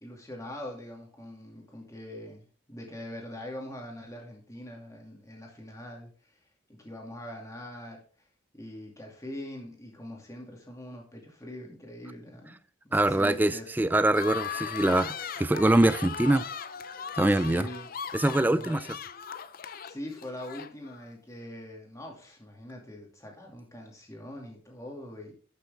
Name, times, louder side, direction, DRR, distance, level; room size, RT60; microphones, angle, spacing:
voice 1, 0.0-6.4 6.7-8.0 8.5-12.6 12.8-13.8 17.3-17.9 18.4-18.8 19.8-25.3, left 1 dB, 15° left, 2.4 m, -43 dB
voice 2, 12.9-16.4 17.2-17.7 18.1-18.8, right 1 dB, 10° right, 0.3 m, -24 dB
sound 1, 14.1-21.0, left 7 dB, 45° left, 0.5 m, -38 dB
12.0 x 6.8 x 3.5 m
head